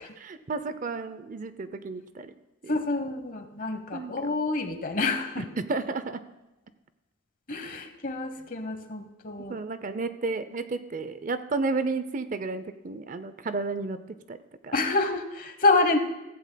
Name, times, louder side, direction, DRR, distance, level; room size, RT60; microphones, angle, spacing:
voice 1, 0.2-2.3 2.6-2.8 3.9-4.3 5.4-6.2 9.5-14.0 14.3-14.4 14.6-14.7, right 3 dB, 40° right, 12 dB, 0.5 m, -32 dB
voice 2, 2.7-5.5 7.5-9.5 14.7-16.0, left 3 dB, 45° left, 8 dB, 1.0 m, -27 dB
15.5 x 15.0 x 2.2 m, 1.0 s
head